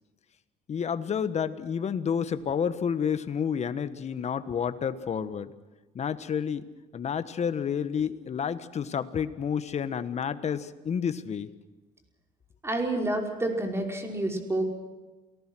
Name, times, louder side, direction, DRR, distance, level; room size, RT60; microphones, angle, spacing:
voice 1, 0.7-5.5 5.9-6.7 6.9-11.5, left 7 dB, 40° left, 12 dB, 1.4 m, -30 dB
voice 2, 12.6-14.7, right 1 dB, 15° right, 2 dB, 5.3 m, -29 dB
29.0 x 19.0 x 6.4 m, 1.2 s
cardioid pair, 110°, 17 cm